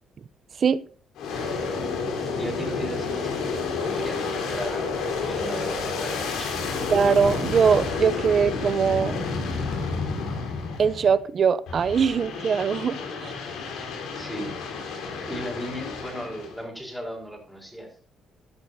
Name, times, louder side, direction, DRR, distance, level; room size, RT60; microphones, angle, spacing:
Aircraft, 1.1-11.2 11.7-16.6, left 4 dB, 85° left, 4.0 m, -30 dB
voice 1, 2.3-4.9 5.2-6.9 14.1-14.5 15.1-17.9, equal, ahead, 4.7 m, -36 dB
voice 2, 6.9-9.2 10.8-13.0 13.2-13.3, right 6 dB, 45° right, 0.7 m, -21 dB
14.5 x 11.0 x 2.8 m
cardioid pair, 120°, 0 cm